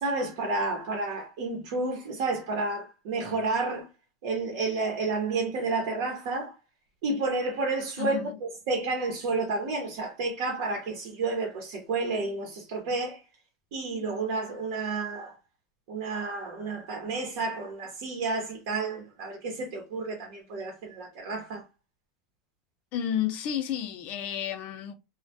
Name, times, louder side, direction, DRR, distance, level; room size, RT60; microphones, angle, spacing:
voice 1, 0.0-3.9 4.2-6.5 7.0-13.2 13.7-15.3 15.9-21.6, right 3 dB, 65° right, 0.8 m, -31 dB
voice 2, 8.0-8.4 22.9-24.9, left 10 dB, 50° left, 0.4 m, -31 dB
2.1 x 2.1 x 2.7 m
supercardioid pair, 135°, 3 cm